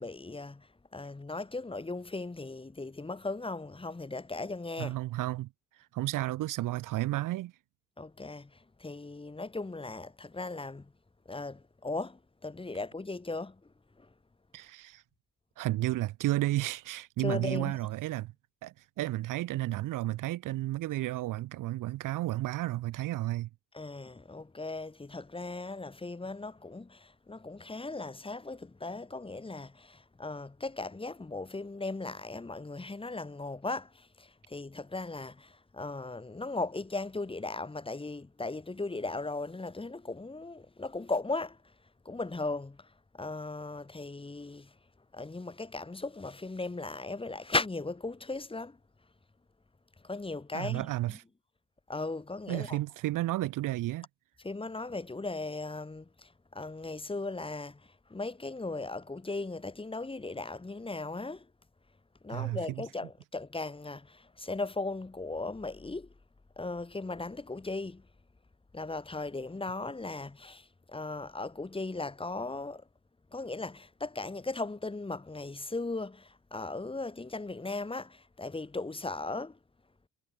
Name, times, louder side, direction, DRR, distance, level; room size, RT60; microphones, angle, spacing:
voice 1, 0.0-5.0 8.0-10.9 11.3-14.1 17.2-17.8 23.7-41.7 42.0-44.8 45.1-48.8 50.0-51.2 51.9-52.8 54.4-61.5 62.2-66.1 66.6-68.1 68.7-72.9 73.3-79.6, left 3 dB, 15° left, 2.4 m, -37 dB
voice 2, 4.8-5.5 5.9-7.5 14.5-15.0 15.6-18.3 18.6-23.5 50.5-51.2 52.5-54.1 62.3-62.6, right 16 dB, 65° right, 0.8 m, -32 dB
cardioid pair, 90°, 34 cm